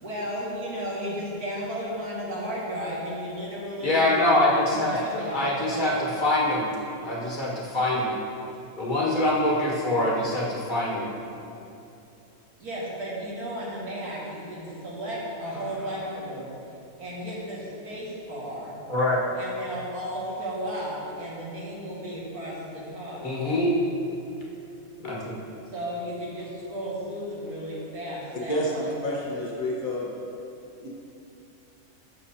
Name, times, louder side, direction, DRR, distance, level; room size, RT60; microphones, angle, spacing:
voice 1, 0.0-4.2 4.7-6.0 12.6-16.5 17.0-18.8 19.3-23.2 25.7-28.9, equal, 90° right, -6 dB, 2.5 m, -34 dB
voice 2, 3.8-5.0 5.3-6.7 7.0-8.1 8.8-11.1 18.9-19.2 23.2-23.7 25.0-25.4, left 1 dB, 35° left, -5 dB, 1.7 m, -24 dB
voice 3, 29.0-30.1 30.8-30.9, left 1 dB, 70° left, -4 dB, 1.8 m, -29 dB
15.5 x 6.7 x 2.8 m, 2.7 s
omnidirectional pair, 1.5 m